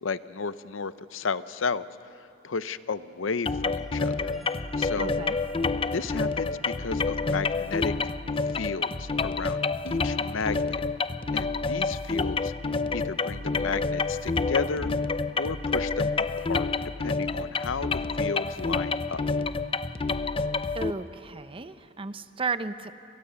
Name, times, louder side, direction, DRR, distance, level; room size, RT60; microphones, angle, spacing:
voice 1, 0.0-1.8 2.2-4.3 4.8-5.2 5.9-7.9 8.5-10.8 11.3-12.5 12.9-14.9 15.4-16.1 16.4-16.7 17.0-19.2, left 5 dB, 75° left, 14 dB, 0.7 m, -33 dB
sound 1, 3.5-20.9, left 4 dB, 25° left, 0.5 m, -28 dB
sound 2, 3.7-14.4, right 1 dB, ahead, 2.8 m, -56 dB
voice 2, 5.0-5.4 20.7-23.0, right 4 dB, 25° right, 11 dB, 0.7 m, -34 dB
29.0 x 24.0 x 6.9 m, 2.8 s
head